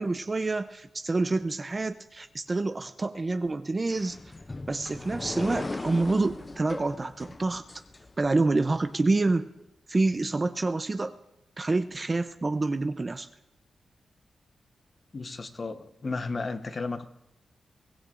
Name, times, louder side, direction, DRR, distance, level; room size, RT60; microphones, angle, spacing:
voice 1, 0.0-4.2 4.7-7.6 8.2-9.5 9.9-11.1 11.6-13.3, right 3 dB, 30° right, 9 dB, 0.5 m, -27 dB
sound 1, 3.9-8.6, left 2 dB, 25° left, 0.5 m, -38 dB
voice 2, 15.1-17.0, left 3 dB, 40° left, 9 dB, 0.9 m, -33 dB
23.0 x 16.5 x 2.5 m, 0.91 s
cardioid pair, 90°, 0 cm